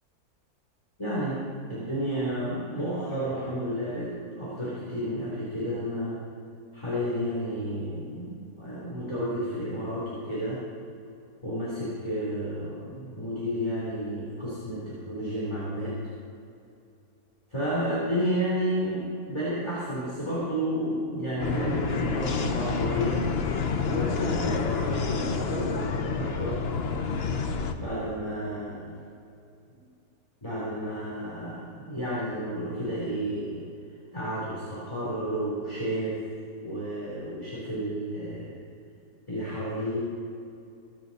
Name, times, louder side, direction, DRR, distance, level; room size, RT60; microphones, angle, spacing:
voice 1, 1.0-1.4 1.7-6.2 6.7-10.6 11.4-16.0 17.5-23.2 23.8-26.6 27.8-28.9 30.4-33.6 34.1-36.2 36.6-38.5 39.3-40.0, equal, 15° left, -8 dB, 3.2 m, -31 dB
sound 1, 21.4-27.7, left 5 dB, 50° left, 0.8 m, -28 dB
22.5 x 8.5 x 4.1 m, 2.5 s
omnidirectional pair, 1.7 m